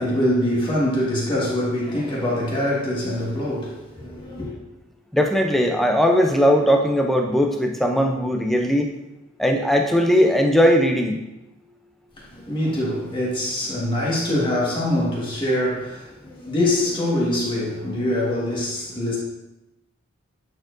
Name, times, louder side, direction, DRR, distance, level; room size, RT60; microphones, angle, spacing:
voice 1, 0.0-4.5 12.2-19.2, left 1 dB, 20° left, -5 dB, 1.5 m, -24 dB
voice 2, 5.1-8.9 9.4-11.2, equal, ahead, 2 dB, 0.4 m, -19 dB
8.8 x 4.5 x 2.6 m, 0.96 s
head